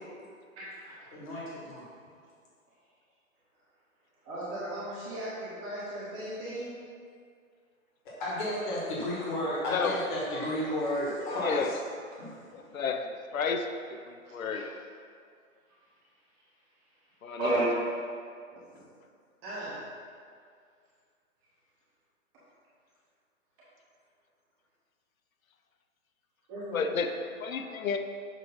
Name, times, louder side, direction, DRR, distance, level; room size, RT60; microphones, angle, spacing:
voice 1, 0.5-0.9 4.2-6.7 14.2-14.6 17.4-17.7 18.7-18.8 19.4-19.8 26.5-27.1 27.6-27.7, right 2 dB, 15° right, -10 dB, 1.0 m, -35 dB
voice 2, 1.1-1.8 8.0-11.7 12.1-12.7, equal, 35° left, -5 dB, 1.5 m, -33 dB
voice 3, 11.4-11.7 12.5-13.7 14.1-14.7 17.2-17.6 26.7-27.1 27.4-28.0, left 6 dB, 75° left, 6 dB, 0.7 m, -31 dB
6.7 x 3.1 x 5.5 m, 2.1 s
hypercardioid pair, 160°, 42 cm